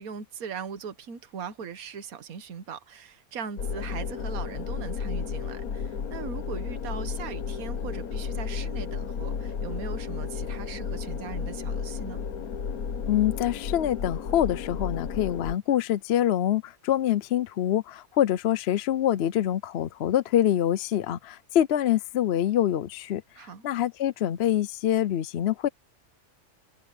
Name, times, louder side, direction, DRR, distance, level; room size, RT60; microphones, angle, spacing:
voice 1, 0.0-12.2 23.4-23.6, right 6 dB, 80° right, 1.6 m, -39 dB
sound 1, 3.6-15.5, left 6 dB, 85° left, 1.7 m, -33 dB
voice 2, 13.1-25.7, left 11 dB, 60° left, 0.7 m, -25 dB
omnidirectional pair, 1.5 m